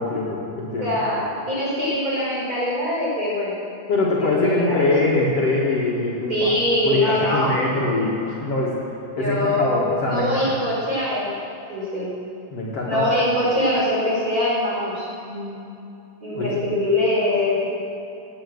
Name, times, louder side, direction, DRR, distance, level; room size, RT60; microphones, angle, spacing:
voice 1, 0.0-1.0 3.9-6.5 6.8-8.8 9.2-10.5 12.5-13.1 16.3-16.6, left 2 dB, 50° left, -5 dB, 2.6 m, -23 dB
voice 2, 0.8-3.6 4.2-4.9 6.3-7.5 9.1-11.4 11.7-12.1 12.9-15.7 16.2-17.7, left 1 dB, 25° right, -7 dB, 5.2 m, -23 dB
18.0 x 9.1 x 7.9 m, 2.7 s
omnidirectional pair, 3.8 m